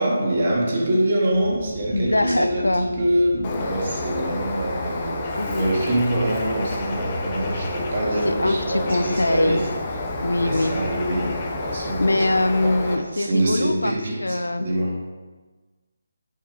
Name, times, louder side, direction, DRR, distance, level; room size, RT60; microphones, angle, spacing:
voice 1, 0.0-5.3 5.6-9.7 10.4-11.4 11.6-12.3 12.6-12.8 13.1-15.0, right 1 dB, 50° right, -3 dB, 1.7 m, -24 dB
sound 1, 1.3-11.9, right 3 dB, 5° left, 1.9 m, -39 dB
voice 2, 1.9-2.9 5.3-5.7 8.2-9.7 10.2-10.9 11.8-13.9 14.2-14.7, left 1 dB, 85° left, 11 dB, 0.4 m, -23 dB
Bird, 3.4-12.9, left 2 dB, 30° left, 0.8 m, -30 dB
4.7 x 4.3 x 4.8 m, 1.3 s
figure-of-eight pair, 150°, 0 cm